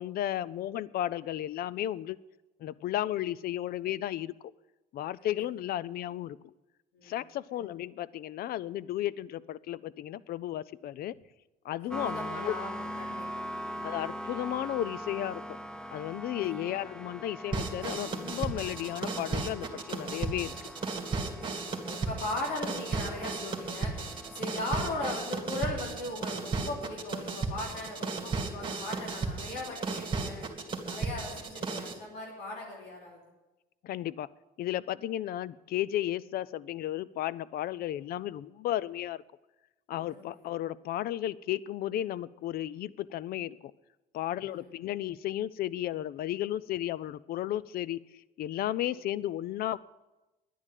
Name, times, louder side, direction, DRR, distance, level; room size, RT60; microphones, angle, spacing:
voice 1, 0.0-2.2 2.6-4.3 4.9-6.5 7.0-11.1 11.6-12.6 13.8-15.6 15.9-20.5 33.8-34.3 34.6-39.2 39.9-43.7 44.1-49.8, left 13 dB, 65° left, 20 dB, 0.5 m, -34 dB
voice 2, 11.8-13.9 16.4-16.9 21.5-30.4 30.8-33.2 40.1-40.2 44.5-44.8, left 2 dB, 80° left, -1 dB, 3.0 m, -39 dB
sound 1, 11.9-24.4, equal, 5° left, 0.5 m, -42 dB
sound 2, 17.5-32.0, right 4 dB, 30° right, 2.5 m, -35 dB
10.5 x 9.9 x 9.3 m, 1.0 s
cardioid pair, 110°, 17 cm